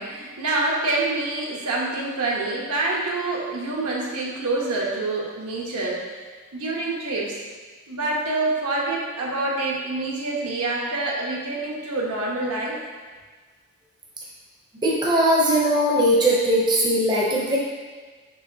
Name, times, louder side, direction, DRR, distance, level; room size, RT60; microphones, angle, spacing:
voice 1, 0.0-6.0 6.5-7.3 7.9-12.7, right 2 dB, 75° right, -3 dB, 0.8 m, -26 dB
voice 2, 14.8-17.6, right 1 dB, 20° right, -5 dB, 0.5 m, -19 dB
4.7 x 3.2 x 2.6 m, 1.4 s
head